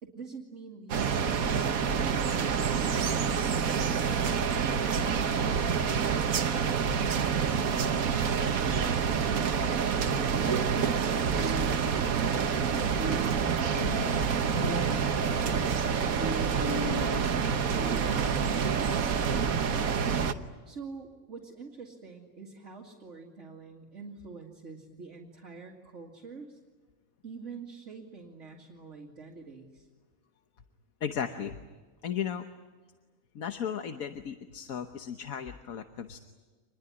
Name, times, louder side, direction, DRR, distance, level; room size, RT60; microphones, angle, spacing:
voice 1, 0.0-2.8 3.8-4.5 17.5-18.2 20.7-26.6 27.2-29.9, right 4 dB, 55° right, -2 dB, 2.6 m, -46 dB
sound 1, 0.9-20.3, right 6 dB, 75° right, 1.5 m, -27 dB
sound 2, 11.3-12.7 12.9-18.2, equal, 25° left, 2.7 m, -38 dB
voice 2, 31.0-31.6 32.0-32.4 33.3-36.2, left 8 dB, 75° left, 7 dB, 1.5 m, -35 dB
26.0 x 21.0 x 9.9 m, 1.4 s
omnidirectional pair, 1.5 m